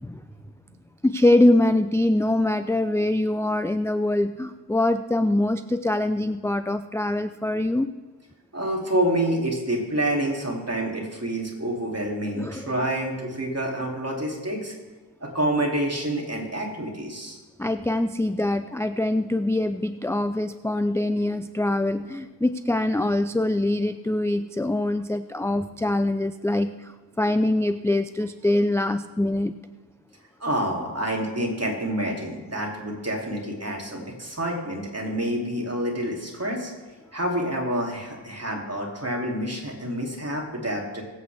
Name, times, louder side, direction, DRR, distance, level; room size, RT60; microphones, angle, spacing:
voice 1, 1.0-7.9 12.4-12.6 17.6-29.5, left 1 dB, 5° left, 10 dB, 0.4 m, -23 dB
voice 2, 8.5-14.7 15.2-17.4 30.4-36.7 37.1-41.0, right 1 dB, 35° right, -1 dB, 2.8 m, -28 dB
22.0 x 8.2 x 3.5 m, 1.2 s
wide cardioid pair, 45°, 43 cm